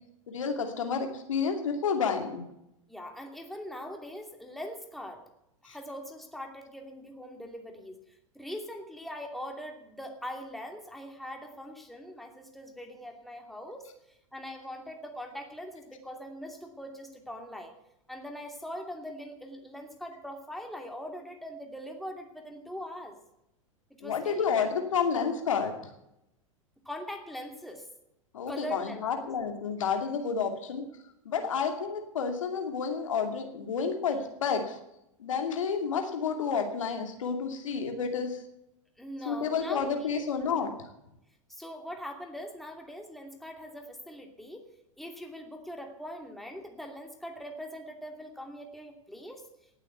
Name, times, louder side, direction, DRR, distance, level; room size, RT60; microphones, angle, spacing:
voice 1, 0.3-2.5 5.7-5.8 24.0-25.7 28.3-30.9 31.2-34.8 35.2-38.4 39.2-40.7, left 6 dB, 70° left, 5 dB, 2.6 m, -30 dB
voice 2, 2.9-5.2 5.6-8.0 8.3-17.7 18.1-23.2 23.9-24.5 26.8-27.9 28.5-29.3 39.0-40.3 41.5-44.6 45.0-49.5, equal, ahead, 3 dB, 2.7 m, -42 dB
18.0 x 8.3 x 8.1 m, 0.84 s
figure-of-eight pair, 95°, 17 cm